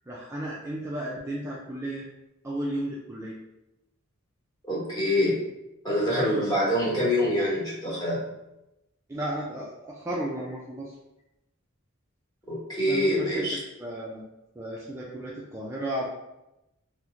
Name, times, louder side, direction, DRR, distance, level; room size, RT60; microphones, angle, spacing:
voice 1, 0.1-2.1 2.4-3.4 6.1-6.4 9.1-10.9 12.9-13.4 13.8-14.2 14.6-16.1, right 1 dB, 15° right, -6 dB, 0.3 m, -33 dB
voice 2, 4.7-5.4 5.8-8.3 12.5-13.6, left 1 dB, 20° left, -7 dB, 1.0 m, -25 dB
2.9 x 2.1 x 3.6 m, 0.92 s
head